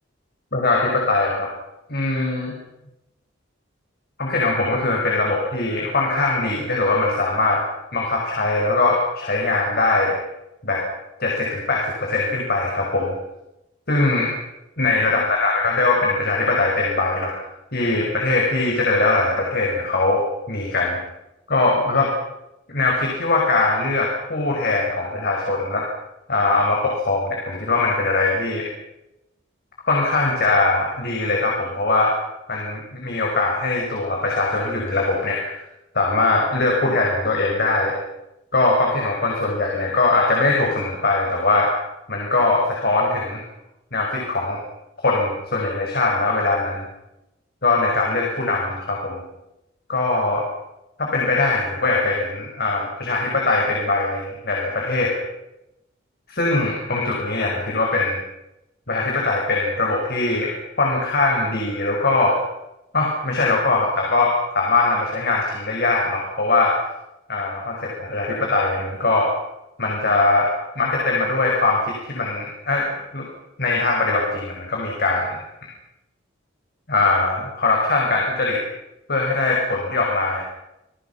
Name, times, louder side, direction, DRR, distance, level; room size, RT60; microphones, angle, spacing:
voice 1, 0.5-1.5 1.9-2.6 4.2-7.6 7.9-10.2 10.6-10.8 11.2-13.1 13.9-14.3 14.8-17.4 17.7-21.0 21.5-22.1 22.7-25.9 26.3-28.7 29.9-32.1 32.5-35.6 35.9-37.9 38.5-41.7 42.1-43.4 43.9-44.6 45.0-46.9 47.6-49.2 49.9-50.4 51.0-55.1 56.3-58.2 58.9-62.4 62.9-66.7 67.3-69.3 69.8-70.5 70.8-73.2 73.6-75.4 76.9-78.6 79.1-80.4, left 3 dB, 55° left, -1 dB, 6.0 m, -21 dB
29.0 x 22.5 x 5.8 m, 0.91 s
head